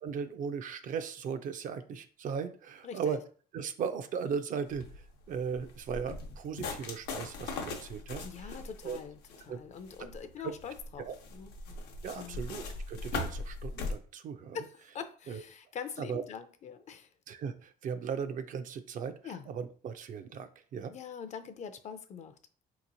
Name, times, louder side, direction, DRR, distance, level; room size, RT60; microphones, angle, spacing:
voice 1, 0.0-3.2 3.5-8.6 8.8-9.0 9.5-9.6 10.4-10.5 11.0-11.1 12.0-14.6 15.3-15.4 16.0-16.2 17.3-20.9, right 6 dB, 50° right, 10 dB, 0.4 m, -37 dB
voice 2, 2.8-3.2 8.2-9.2 9.5-11.8 12.1-12.4 14.5-17.1 19.2-19.5 20.9-22.3, left 7 dB, 45° left, 10 dB, 0.4 m, -43 dB
sound 1, 4.7-13.9, left 3 dB, 85° left, 0.7 m, -40 dB
4.1 x 2.9 x 2.6 m, 0.42 s
cardioid pair, 110°, 17 cm